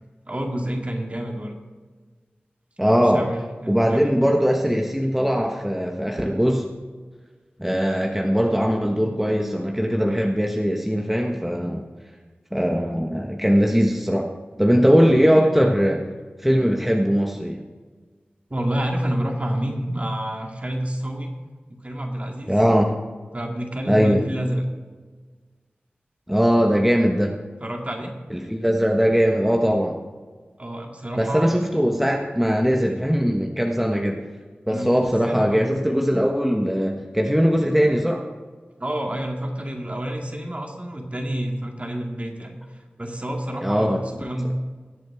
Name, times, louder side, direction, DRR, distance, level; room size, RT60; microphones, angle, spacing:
voice 1, 0.3-1.6 3.0-4.3 18.5-21.3 21.7-22.6 23.3-24.6 27.6-28.1 30.6-31.5 34.7-35.7 38.8-44.5, right 1 dB, 35° right, 1 dB, 2.2 m, -29 dB
voice 2, 2.8-3.3 3.7-6.7 7.6-11.8 12.5-14.3 14.6-16.0 16.4-17.6 22.5-23.0 23.9-24.3 26.3-27.3 28.3-30.0 31.2-34.2 34.7-38.2 43.6-44.0, equal, 5° right, 0 dB, 1.2 m, -20 dB
20.5 x 7.7 x 3.6 m, 1.4 s
cardioid pair, 40°, 4 cm